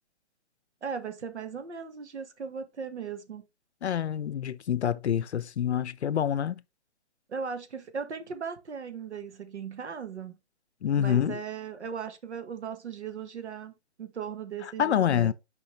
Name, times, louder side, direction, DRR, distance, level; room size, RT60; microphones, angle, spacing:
voice 1, 0.8-3.4 7.3-10.4 11.0-13.7 14.0-15.3, right 6 dB, 70° right, 1.3 m, -37 dB
voice 2, 3.8-6.6 10.8-11.4 14.8-15.3, left 9 dB, 70° left, 0.6 m, -26 dB
6.8 x 5.1 x 3.1 m
hypercardioid pair, 165°, 35 cm